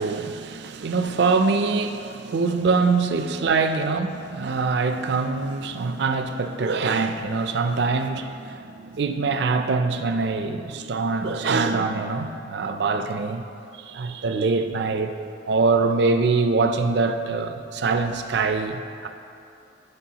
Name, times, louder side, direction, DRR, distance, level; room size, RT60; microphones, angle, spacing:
voice 1, 0.0-13.4 13.8-15.2 15.5-19.1, right 4 dB, 60° right, 7 dB, 0.4 m, -24 dB
11.5 x 5.4 x 2.9 m, 2.6 s
head